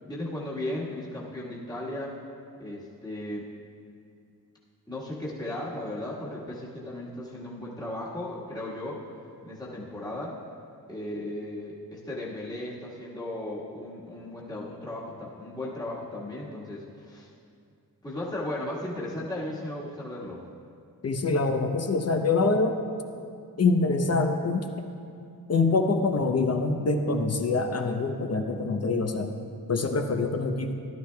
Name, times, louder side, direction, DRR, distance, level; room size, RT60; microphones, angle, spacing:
voice 1, 0.1-2.1 2.6-3.4 4.9-9.0 9.4-10.4 10.9-17.3 18.0-20.4, left 1 dB, 10° left, -6 dB, 1.6 m, -36 dB
voice 2, 21.0-22.8 23.6-24.7 25.5-29.3 29.7-30.7, left 3 dB, 40° left, 5 dB, 0.8 m, -25 dB
13.5 x 11.0 x 2.3 m, 2.4 s
wide cardioid pair, 95°, 40 cm